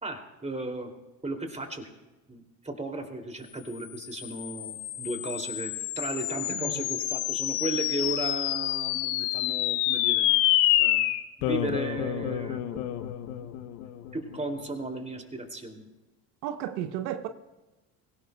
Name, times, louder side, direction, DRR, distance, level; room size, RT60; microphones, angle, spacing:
voice 1, 0.0-0.9 1.2-1.9 2.3-10.3 10.8-11.0 11.4-12.8 13.4-13.5 14.1-15.8, right 2 dB, 15° right, 2.7 m, -35 dB
sound 1, 3.9-14.6, left 14 dB, 80° left, 0.9 m, -28 dB
voice 2, 6.5-6.8 16.4-17.3, right 11 dB, 85° right, 0.9 m, -33 dB
21.5 x 17.5 x 2.3 m
hypercardioid pair, 70°, 49 cm